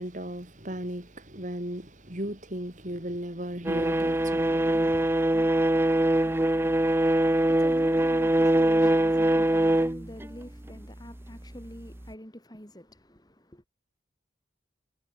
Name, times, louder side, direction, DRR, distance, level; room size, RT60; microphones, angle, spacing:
voice 1, 0.0-5.1, right 1 dB, 45° right, 4.1 m, -36 dB
sound 1, 3.6-10.8 11.9-12.0, right 1 dB, 15° right, 0.6 m, -23 dB
voice 2, 6.8-13.6, equal, 20° left, 6.4 m, -46 dB
head